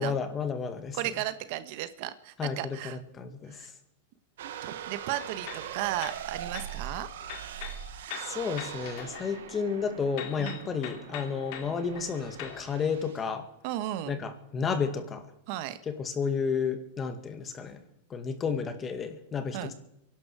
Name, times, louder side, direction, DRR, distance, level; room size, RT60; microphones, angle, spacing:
voice 1, 0.0-1.0 2.4-3.7 8.2-13.5 14.1-15.3 15.9-17.8 18.1-19.7, left 6 dB, 25° left, 8 dB, 2.2 m, -32 dB
voice 2, 0.9-3.0 3.5-3.7 4.4-7.1 10.4-10.7 13.6-14.2 15.5-15.8 19.5-19.7, right 14 dB, 55° right, 12 dB, 1.3 m, -35 dB
sound 1, 4.4-13.2, right 9 dB, 75° right, 1.4 m, -41 dB
sound 2, 5.2-6.8 7.2-9.8 10.2-12.6, left 9 dB, 60° left, 2.6 m, -43 dB
23.5 x 11.5 x 4.9 m, 0.84 s
hypercardioid pair, 125°, 0 cm